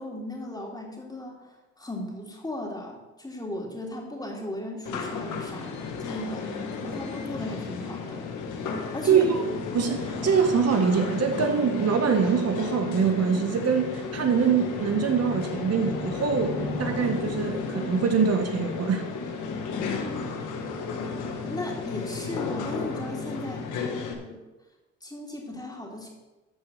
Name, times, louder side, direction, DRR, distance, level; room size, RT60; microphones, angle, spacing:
voice 1, 0.0-1.5 1.8-8.2 8.9-9.3 20.0-20.4 21.5-24.4 25.0-26.1, left 1 dB, 15° left, -1 dB, 3.2 m, -36 dB
sound 1, 4.9-24.1, left 4 dB, 85° left, 1.8 m, -33 dB
voice 2, 9.1-9.4 9.7-19.0, right 6 dB, 55° right, 4 dB, 1.6 m, -24 dB
13.0 x 4.8 x 7.8 m, 1.1 s
cardioid pair, 90°, 30 cm